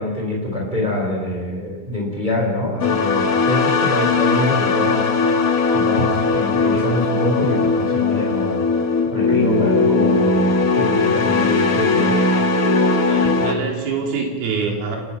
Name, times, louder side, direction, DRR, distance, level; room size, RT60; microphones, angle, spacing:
voice 1, 0.0-5.1 5.7-8.6 9.1-12.2, left 1 dB, 10° right, 0 dB, 4.1 m, -24 dB
sound 1, 2.8-13.5, left 4 dB, 60° left, 0.9 m, -18 dB
voice 2, 13.1-15.0, right 4 dB, 80° right, 1 dB, 4.4 m, -25 dB
29.5 x 17.5 x 5.8 m, 1.5 s
omnidirectional pair, 4.2 m